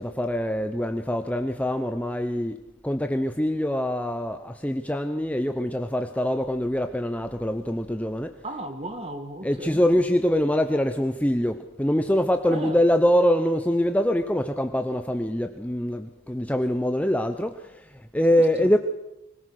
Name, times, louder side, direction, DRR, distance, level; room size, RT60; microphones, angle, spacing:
voice 1, 0.0-2.6 2.8-8.3 9.4-18.8, equal, 5° left, 0.7 m, -24 dB
voice 2, 8.4-9.8 12.5-12.8 18.3-18.7, right 1 dB, 30° right, 2.1 m, -35 dB
24.5 x 18.0 x 6.5 m
head